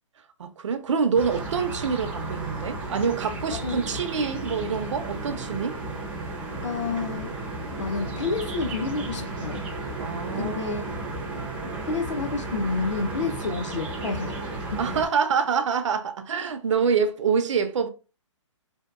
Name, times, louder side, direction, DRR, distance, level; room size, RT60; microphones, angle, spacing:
voice 1, 0.4-5.8 10.0-10.8 14.8-17.9, right 6 dB, 70° right, 0.5 m, -26 dB
sound 1, 1.1-15.1, right 2 dB, 10° right, 0.4 m, -33 dB
voice 2, 3.5-3.8 6.6-7.4 7.8-9.6 10.3-10.9 11.9-14.4 14.7-14.9, left 4 dB, 65° left, 0.5 m, -29 dB
2.7 x 2.2 x 2.3 m
hypercardioid pair, 155°, 16 cm